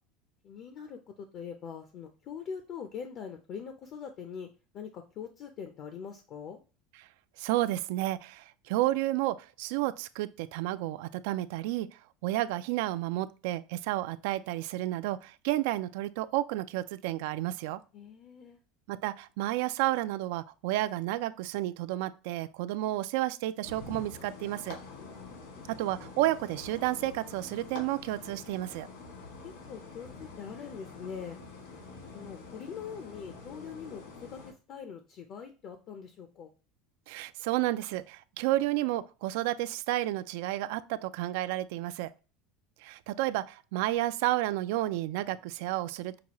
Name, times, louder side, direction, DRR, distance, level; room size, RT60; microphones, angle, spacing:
voice 1, 0.4-4.5 4.7-6.6 17.9-18.6 25.0-25.4 29.1-31.4 32.1-36.5, left 7 dB, 40° left, 0.5 m, -43 dB
voice 2, 7.4-11.9 12.2-17.8 18.9-24.8 25.8-28.9 37.1-42.1 42.8-46.2, right 15 dB, 70° right, 0.3 m, -31 dB
sound 1, 23.6-34.5, left 4 dB, 75° left, 1.9 m, -46 dB
5.8 x 2.3 x 2.9 m
cardioid pair, 160°, 0 cm